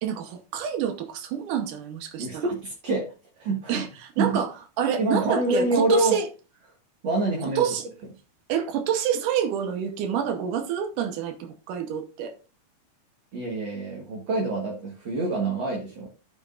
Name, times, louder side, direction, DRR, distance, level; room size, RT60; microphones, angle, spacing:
voice 1, 0.0-2.5 3.7-6.3 7.6-7.8 8.5-12.3, right 8 dB, 90° right, 2.6 m, -28 dB
voice 2, 2.2-3.1 3.4-3.8 4.2-4.3 5.0-6.2 7.0-7.6 13.3-16.1, right 2 dB, 45° right, 2.0 m, -26 dB
14.5 x 6.3 x 2.4 m
omnidirectional pair, 3.6 m